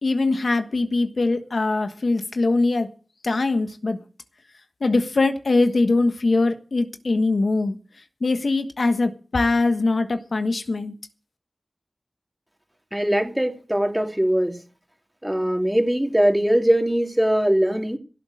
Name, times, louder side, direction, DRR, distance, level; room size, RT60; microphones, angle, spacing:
voice 1, 0.0-2.9 3.2-4.0 4.8-7.8 8.2-10.9, left 3 dB, 85° left, 1.3 m, -22 dB
voice 2, 12.9-14.6 15.2-18.0, right 1 dB, 10° right, 3.0 m, -21 dB
17.0 x 7.9 x 6.5 m
wide cardioid pair, 45°, 0 cm